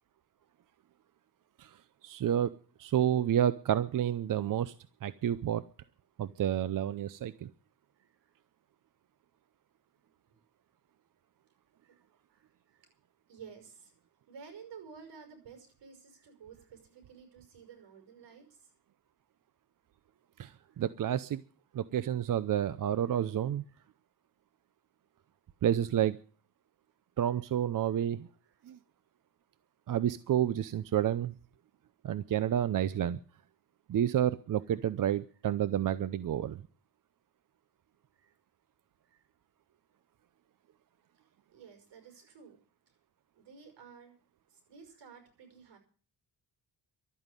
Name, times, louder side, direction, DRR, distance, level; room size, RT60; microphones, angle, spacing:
voice 1, 1.6-2.5 2.8-4.7 5.0-5.6 6.2-7.5 20.4-21.4 21.7-23.6 25.6-26.2 27.2-28.3 28.6-28.8 29.9-31.4 32.0-33.2 33.9-36.6, right 10 dB, 50° right, 15 dB, 0.7 m, -30 dB
voice 2, 8.0-8.3 11.8-12.0 12.3-12.9 13.3-13.9 14.3-18.7 20.7-20.8 23.7-23.8 38.2-38.3 39.1-39.3 41.5-42.6 43.4-44.1 44.5-45.8, right 6 dB, 80° right, 6 dB, 5.6 m, -53 dB
12.5 x 9.1 x 9.7 m, 0.41 s
cardioid pair, 125°, 42 cm